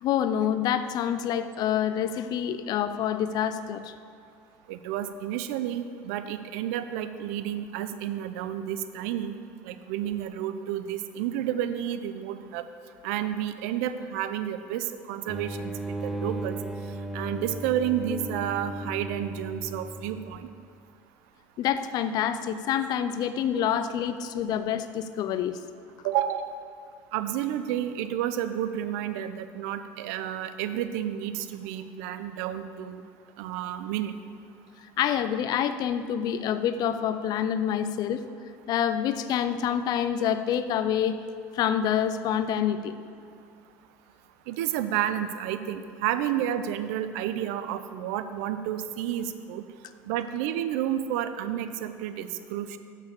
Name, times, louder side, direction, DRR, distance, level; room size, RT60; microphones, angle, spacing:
voice 1, 0.0-3.9 21.6-25.6 35.0-38.2 38.7-41.2 41.5-43.0, left 9 dB, 55° left, 11 dB, 0.5 m, -27 dB
voice 2, 4.7-9.4 9.6-12.6 13.0-16.6 17.1-20.5 23.3-23.4 26.0-26.5 27.1-33.0 33.4-34.1 44.5-49.6 50.0-52.8, right 11 dB, 75° right, 11 dB, 0.5 m, -31 dB
sound 1, 15.3-20.6, right 1 dB, 5° right, 0.6 m, -36 dB
7.0 x 6.4 x 6.6 m, 2.4 s
hypercardioid pair, 80°, 8 cm